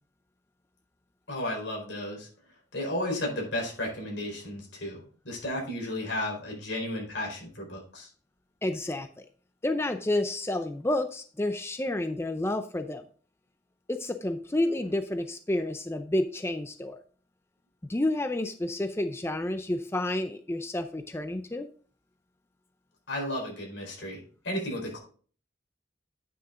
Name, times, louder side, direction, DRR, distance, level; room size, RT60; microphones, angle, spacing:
voice 1, 1.3-2.3 2.7-8.1 23.1-25.0, left 1 dB, 85° left, 0 dB, 4.8 m, -33 dB
voice 2, 8.6-9.3 9.6-13.0 13.9-17.0 17.9-21.7, left 1 dB, 15° left, 8 dB, 0.5 m, -30 dB
9.5 x 6.6 x 3.8 m, 0.42 s
head